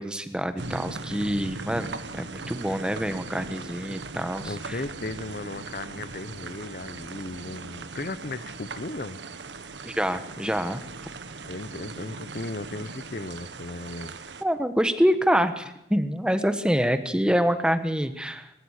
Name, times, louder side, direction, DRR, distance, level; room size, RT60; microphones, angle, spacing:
voice 1, 0.0-4.8 9.8-10.8 14.4-18.5, equal, 5° right, 1.3 m, -26 dB
sound 1, 0.6-14.4, right 3 dB, 85° right, 1.4 m, -39 dB
voice 2, 4.5-9.2 11.4-14.2, left 2 dB, 55° left, 0.9 m, -36 dB
22.5 x 21.0 x 6.6 m
head